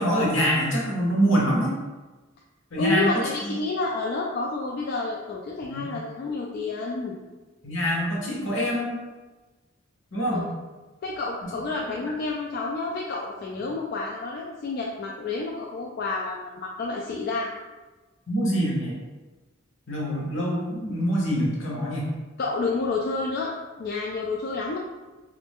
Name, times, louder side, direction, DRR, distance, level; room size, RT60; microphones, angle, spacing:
voice 1, 0.0-1.8 2.7-3.5 5.6-5.9 7.6-9.0 10.1-10.4 11.4-11.5 18.3-18.9 19.9-22.1, equal, 70° left, -3 dB, 1.0 m, -25 dB
voice 2, 2.8-7.2 10.3-10.5 11.0-17.5 22.4-23.5 23.8-24.8, left 3 dB, 50° left, -1 dB, 0.3 m, -29 dB
3.1 x 2.5 x 3.5 m, 1.2 s
head